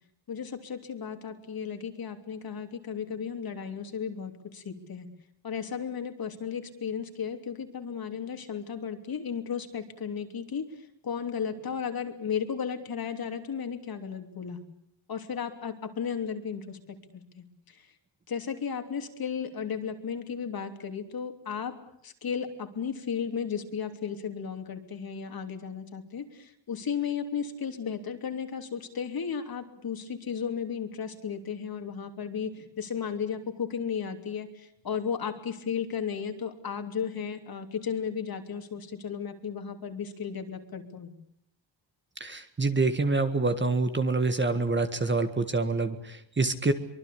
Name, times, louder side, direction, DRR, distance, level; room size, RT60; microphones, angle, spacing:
voice 1, 0.3-5.1 5.4-14.6 15.1-17.9 18.3-21.8 22.0-41.1, left 7 dB, 50° left, 6 dB, 3.1 m, -34 dB
voice 2, 42.2-46.7, right 3 dB, 25° right, 9 dB, 1.7 m, -26 dB
24.5 x 23.5 x 8.5 m, 0.71 s
wide cardioid pair, 160°, 47 cm